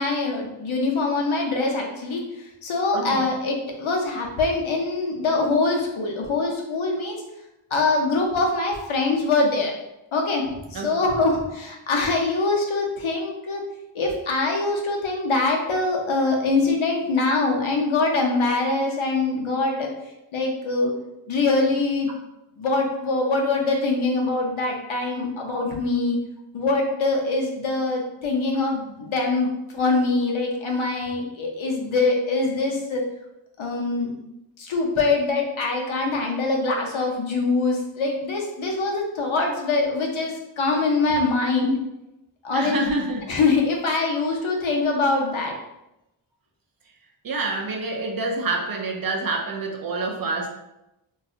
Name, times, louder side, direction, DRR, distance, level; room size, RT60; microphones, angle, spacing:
voice 1, 0.0-7.2 7.7-9.7 10.1-13.6 13.9-19.9 20.3-20.9 21.3-22.1 22.6-26.2 26.5-33.0 33.6-34.1 34.6-41.8 42.4-42.9 43.3-45.6, left 3 dB, 75° left, 1 dB, 0.6 m, -23 dB
voice 2, 42.5-43.2 47.2-50.5, right 3 dB, 45° right, 1 dB, 0.5 m, -27 dB
2.7 x 2.3 x 2.4 m, 0.90 s
wide cardioid pair, 80°, 50 cm